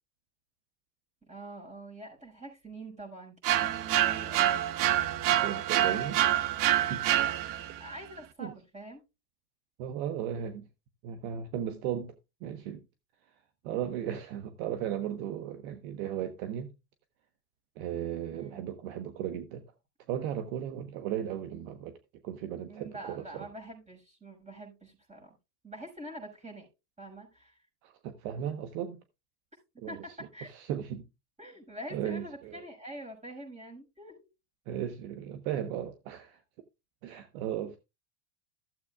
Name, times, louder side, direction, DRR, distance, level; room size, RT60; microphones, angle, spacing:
voice 1, 1.2-4.7 7.8-9.0 18.3-18.6 22.7-25.3 25.6-26.7 27.0-27.6 29.9-30.5 31.4-34.3, right 1 dB, 15° right, 6.3 m, -45 dB
sound 1, 3.4-7.8, right 12 dB, 45° right, 0.9 m, -27 dB
voice 2, 5.3-6.2 6.9-7.1 8.4-8.5 9.8-10.6 11.0-12.1 12.4-12.8 13.6-16.7 17.8-19.6 20.1-22.0 22.2-23.5 27.8-29.0 29.8-30.0 30.4-31.0 31.9-32.6 34.7-36.4 37.0-37.8, right 10 dB, 60° right, 1.3 m, -36 dB
15.0 x 7.8 x 2.4 m
supercardioid pair, 110°, 46 cm